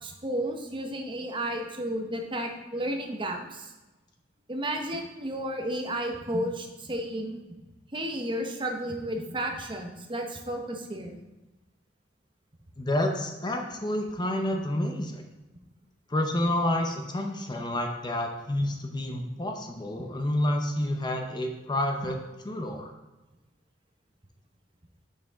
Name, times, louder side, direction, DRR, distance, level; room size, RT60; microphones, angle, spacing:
voice 1, 0.0-3.7 4.5-7.4 7.9-11.2, right 1 dB, 30° right, 3 dB, 0.9 m, -32 dB
voice 2, 12.8-15.2 16.1-22.2 22.4-22.9, left 1 dB, 25° left, 3 dB, 0.7 m, -29 dB
6.8 x 5.6 x 3.6 m, 1.1 s
head